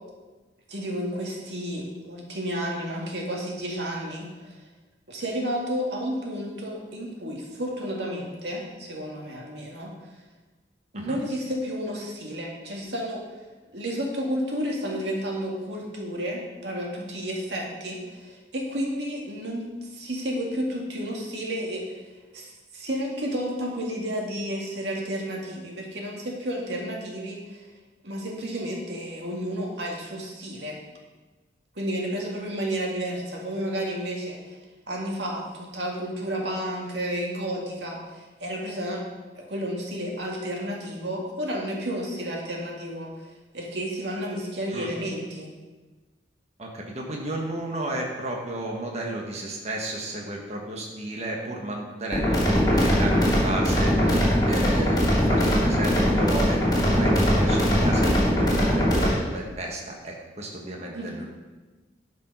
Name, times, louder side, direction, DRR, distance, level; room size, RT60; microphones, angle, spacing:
voice 1, 0.7-4.7 5.1-9.9 10.9-13.2 13.7-22.0 22.3-27.7 28.0-30.8 31.8-34.6 34.9-39.1 39.4-45.5 60.9-61.2, equal, 75° right, -1 dB, 2.1 m, -31 dB
voice 2, 46.6-61.3, right 1 dB, 40° right, -1 dB, 1.3 m, -33 dB
sound 1, 52.1-59.1, equal, 25° left, 3.3 m, -21 dB
11.5 x 5.3 x 5.4 m, 1.2 s
head